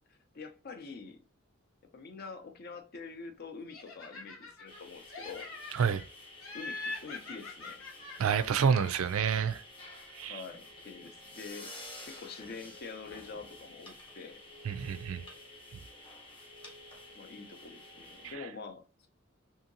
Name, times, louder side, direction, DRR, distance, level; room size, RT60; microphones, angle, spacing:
voice 1, 0.1-1.2 1.9-5.5 6.5-7.9 10.3-11.7 12.0-14.4 17.1-19.1, left 4 dB, 50° left, 0.5 m, -46 dB
Laughter, 3.7-4.8 5.1-6.0 6.4-9.2, left 3 dB, 70° left, 0.9 m, -44 dB
sound 1, 4.7-18.3, left 2 dB, 25° left, 0.8 m, -51 dB
voice 2, 8.2-9.6 10.1-10.4 14.7-15.2 18.2-18.3, right 6 dB, 75° right, 0.4 m, -28 dB
2.7 x 2.7 x 2.5 m
head